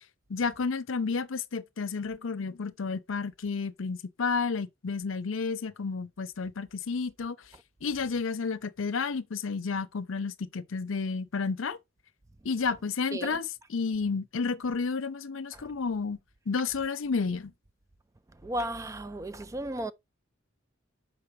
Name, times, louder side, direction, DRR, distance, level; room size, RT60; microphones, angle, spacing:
voice 1, 0.3-7.4 7.8-11.8 12.4-16.2 16.5-17.5, left 4 dB, 70° left, 0.6 m, -31 dB
voice 2, 18.4-19.9, right 1 dB, 15° right, 0.4 m, -34 dB
6.9 x 5.3 x 3.1 m
head